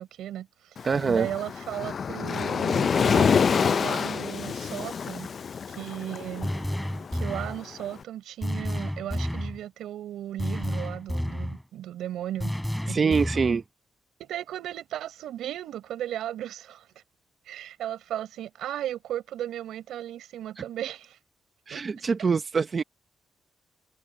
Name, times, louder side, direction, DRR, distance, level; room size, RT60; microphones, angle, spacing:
voice 1, 0.0-5.3 5.7-6.5 7.1-12.5 12.9-13.2 14.2-16.9 17.4-21.2 21.7-21.8, right 12 dB, 90° right, 6.8 m, -36 dB
Waves surf, 0.8-7.9, left 6 dB, 55° left, 0.5 m, -27 dB
voice 2, 0.8-1.3 12.9-13.6 20.6-20.7 21.7-22.8, right 5 dB, 45° right, 0.9 m, -25 dB
sound 1, 6.4-7.6 8.4-9.6 10.4-11.6 12.4-13.6, equal, 5° left, 3.6 m, -30 dB
cardioid pair, 70°, 0 cm